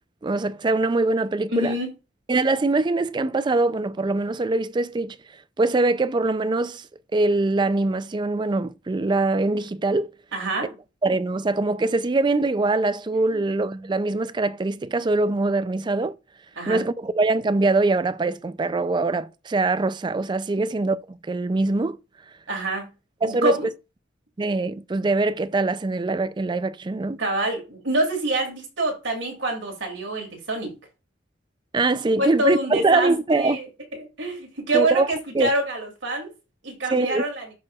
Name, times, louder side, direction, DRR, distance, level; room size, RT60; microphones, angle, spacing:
voice 1, 0.2-1.8 2.3-5.2 5.6-6.9 7.1-10.1 11.0-16.2 16.7-22.0 23.2-23.7 24.4-27.2 31.7-33.6 34.7-35.1 35.3-35.5 36.9-37.2, right 3 dB, 25° right, 0.3 m, -23 dB
voice 2, 1.5-1.9 10.3-10.8 13.3-13.4 16.6-16.8 22.5-22.9 23.2-23.7 27.2-30.7 32.2-33.7 33.9-36.3 36.6-37.4, right 1 dB, 70° right, 2.6 m, -26 dB
11.0 x 4.7 x 2.4 m
head